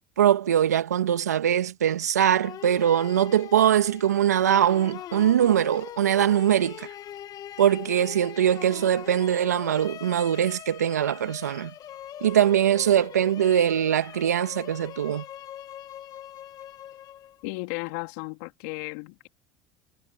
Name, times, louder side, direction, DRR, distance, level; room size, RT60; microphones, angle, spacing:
voice 1, 0.2-6.9 7.6-11.7 12.2-15.2, right 10 dB, 90° right, 1.9 m, -22 dB
sound 1, 2.4-17.5, left 11 dB, 50° left, 2.4 m, -42 dB
voice 2, 17.4-19.3, left 28 dB, 70° left, 3.4 m, -34 dB
hypercardioid pair, 75°, 9 cm